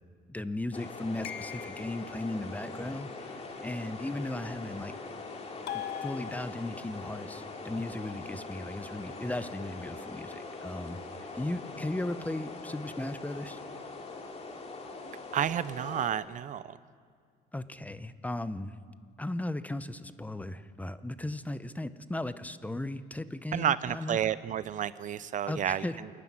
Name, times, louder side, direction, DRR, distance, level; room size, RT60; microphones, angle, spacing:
voice 1, 0.3-5.0 5.7-13.6 17.5-18.7 19.2-24.2 25.5-26.0, left 1 dB, 10° left, 13 dB, 0.7 m, -36 dB
sound 1, 0.7-16.1, left 3 dB, 35° left, 2.7 m, -42 dB
sound 2, 1.2-2.2 5.7-6.9, left 11 dB, 70° left, 1.2 m, -40 dB
voice 2, 15.3-16.8 23.5-26.1, right 10 dB, 45° right, 17 dB, 0.5 m, -31 dB
27.0 x 11.5 x 9.7 m, 2.1 s
cardioid pair, 115°, 18 cm